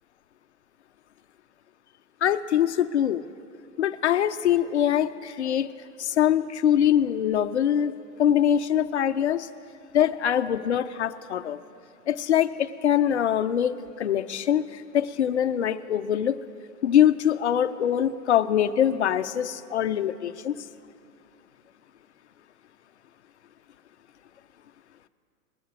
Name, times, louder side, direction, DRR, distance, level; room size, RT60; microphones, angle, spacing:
voice 1, 2.2-3.2 3.8-5.7 6.0-7.9 8.2-9.5 9.9-11.6 12.1-16.4 16.8-20.6, left 10 dB, 50° left, 11 dB, 0.5 m, -23 dB
21.5 x 7.2 x 4.7 m, 2.5 s
hypercardioid pair, 170°, 47 cm